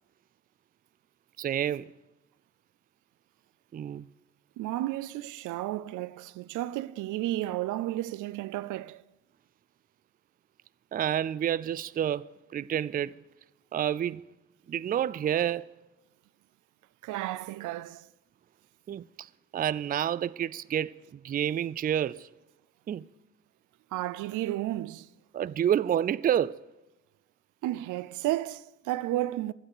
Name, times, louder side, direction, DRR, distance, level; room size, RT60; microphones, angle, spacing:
voice 1, 1.4-1.9 3.7-4.1 10.9-13.2 13.7-14.3 14.7-15.7 18.9-22.3 22.9-23.1 25.3-26.6, right 10 dB, 30° right, 0.4 m, -29 dB
voice 2, 4.6-9.0 17.0-18.1 23.9-25.1 27.6-29.5, right 15 dB, 85° right, 0.5 m, -32 dB
12.5 x 8.9 x 6.7 m
cardioid pair, 90°, 30 cm